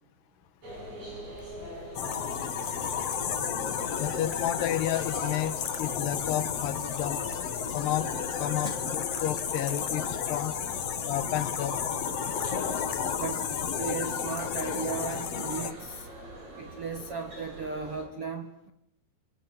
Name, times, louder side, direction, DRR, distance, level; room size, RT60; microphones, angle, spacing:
sound 1, 0.6-18.0, right 1 dB, 40° right, 8.2 m, -44 dB
sound 2, 1.9-15.7, left 7 dB, 55° left, 1.8 m, -32 dB
voice 1, 3.9-7.2 7.7-8.1 8.4-10.5 11.1-11.8, left 12 dB, 70° left, 3.0 m, -31 dB
voice 2, 13.2-16.1 16.6-18.7, right 5 dB, 55° right, 1.6 m, -36 dB
28.0 x 21.5 x 9.5 m
omnidirectional pair, 5.2 m